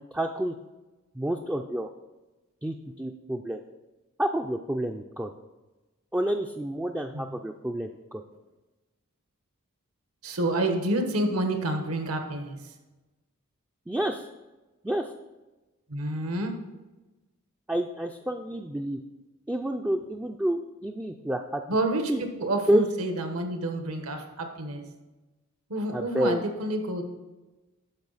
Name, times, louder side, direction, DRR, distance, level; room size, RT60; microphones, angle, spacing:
voice 1, 0.1-0.5 1.1-1.9 2.6-3.6 4.2-5.3 6.1-8.2 13.9-14.3 14.8-15.1 17.7-19.0 19.5-21.6 22.1-22.2 22.7-22.9 25.9-26.4, right 1 dB, 5° right, 3 dB, 0.3 m, -29 dB
voice 2, 10.2-12.6 15.9-16.6 21.7-22.0 22.4-24.8 25.7-27.0, right 1 dB, 70° right, 5 dB, 1.2 m, -28 dB
10.5 x 6.5 x 4.0 m, 1.1 s
head